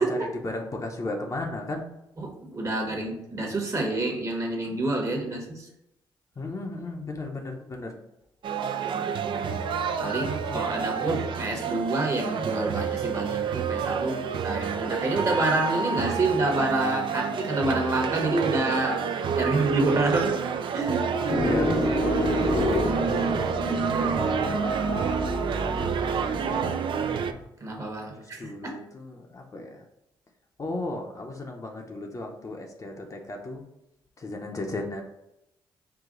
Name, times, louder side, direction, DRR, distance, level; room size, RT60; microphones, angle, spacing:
voice 1, 0.0-1.9 4.6-5.2 6.4-7.9 10.1-11.3 21.4-22.0 22.3-24.7 26.4-26.7 28.1-29.8 30.6-33.6 34.2-35.0, left 2 dB, 40° left, 2 dB, 0.7 m, -36 dB
voice 2, 2.2-5.7 8.9-9.6 10.0-14.2 14.4-19.0 19.3-20.4 20.7-21.1 25.9-26.4 27.6-28.7, right 2 dB, 35° right, 1 dB, 1.1 m, -28 dB
sound 1, 8.4-27.3, right 6 dB, 65° right, 0.4 m, -28 dB
sound 2, 19.6-27.4, left 1 dB, 90° left, 1.4 m, -29 dB
4.8 x 2.2 x 3.8 m, 0.84 s
cardioid pair, 75°, 9 cm